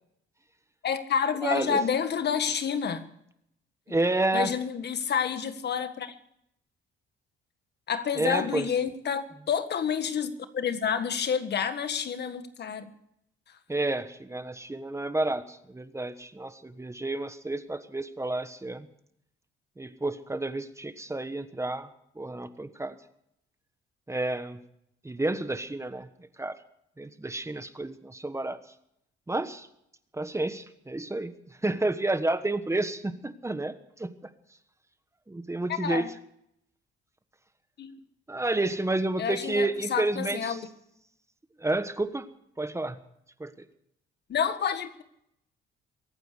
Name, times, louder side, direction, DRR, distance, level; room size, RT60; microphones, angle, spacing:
voice 1, 0.8-3.1 4.3-6.1 7.9-12.9 35.8-36.1 37.8-38.0 39.2-40.7 44.3-45.0, left 7 dB, 55° left, 10 dB, 1.6 m, -29 dB
voice 2, 1.4-1.8 3.9-4.5 8.2-8.7 13.7-18.9 19.8-21.9 22.2-23.0 24.1-24.6 25.0-26.1 26.4-26.6 27.0-28.6 29.3-29.7 30.1-31.3 31.6-34.1 35.3-36.0 38.3-40.6 41.6-42.2 42.6-43.0 43.4-43.7, right 2 dB, 15° right, 10 dB, 1.3 m, -30 dB
23.0 x 9.1 x 6.7 m, 0.76 s
cardioid pair, 90°, 20 cm